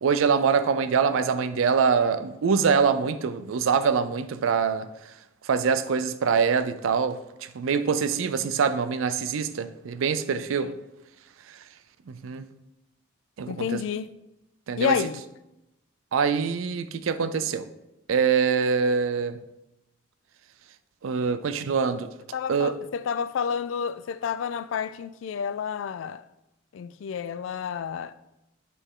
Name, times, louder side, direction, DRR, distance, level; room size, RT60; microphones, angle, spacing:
voice 1, 0.0-4.9 5.4-10.7 12.1-12.5 13.4-13.8 14.7-15.0 16.1-17.7 18.1-19.4 21.0-22.1 22.5-22.7, right 6 dB, 90° right, 0.4 m, -24 dB
voice 2, 13.5-14.1 14.8-15.2 22.3-26.2 26.7-28.1, left 7 dB, 75° left, 0.3 m, -30 dB
8.4 x 3.3 x 3.7 m
head